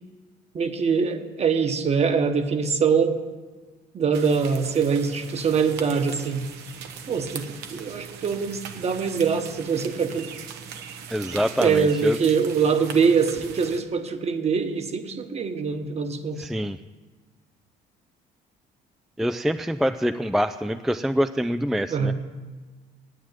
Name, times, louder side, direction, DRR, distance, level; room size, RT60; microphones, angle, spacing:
voice 1, 0.5-3.2 3.9-6.5 7.1-10.3 11.3-16.5 21.9-22.2, right 6 dB, 40° right, 7 dB, 1.2 m, -23 dB
sound 1, 4.1-13.8, right 7 dB, 90° right, 1.1 m, -40 dB
voice 2, 11.1-12.2 16.4-16.8 19.2-22.1, equal, ahead, 10 dB, 0.3 m, -25 dB
9.6 x 8.7 x 9.6 m, 1.3 s
cardioid pair, 110°, 17 cm